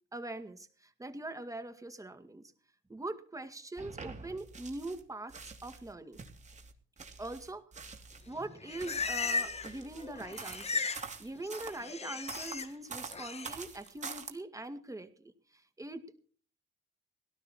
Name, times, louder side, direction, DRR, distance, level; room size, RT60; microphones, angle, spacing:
voice 1, 0.1-2.5 2.9-6.2 7.2-7.6 8.3-10.8 11.2-16.3, right 2 dB, 15° right, 9 dB, 2.1 m, -42 dB
sound 1, 3.8-5.0 5.3-8.3 8.7-11.8 12.3-14.3, right 5 dB, 35° right, 2.9 m, -46 dB
Livestock farm animals working animals, 8.3-9.8 10.0-11.1 11.3-12.7 13.1-13.5, left 4 dB, 30° left, 1.9 m, -36 dB
18.0 x 12.5 x 4.4 m, 0.43 s
cardioid pair, 90°, 20 cm